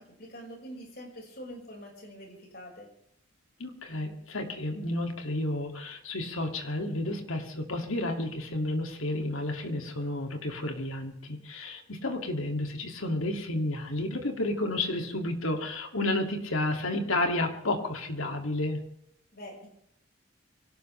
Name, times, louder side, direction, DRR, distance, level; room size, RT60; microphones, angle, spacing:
voice 1, 0.0-2.9 19.3-19.7, equal, 50° left, 0 dB, 5.5 m, -45 dB
voice 2, 3.6-18.8, left 1 dB, 85° left, 4 dB, 2.6 m, -31 dB
24.0 x 17.5 x 3.4 m, 0.74 s
head